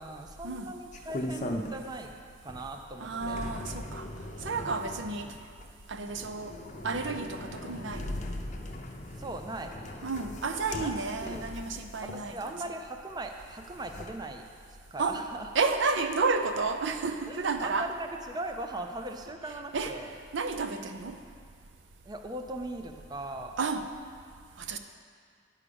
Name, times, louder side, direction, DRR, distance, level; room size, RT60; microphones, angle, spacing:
voice 1, 0.0-2.1 2.4-3.4 9.2-9.7 10.8-11.5 12.0-14.5 14.9-15.5 17.3-20.1 22.1-23.5, right 2 dB, 20° right, 5 dB, 0.4 m, -39 dB
sound 1, 0.9-2.1 2.5-12.7 13.4-14.1, left 1 dB, 40° left, 0.6 m, -40 dB
voice 2, 3.0-4.1 4.4-5.3 5.9-6.5 6.8-8.2 10.0-12.6 15.0-15.2 15.5-17.9 19.7-19.9 20.3-21.2 23.6-23.8 24.6-24.8, right 4 dB, 75° right, 7 dB, 0.6 m, -31 dB
9.6 x 4.9 x 6.8 m, 2.1 s
head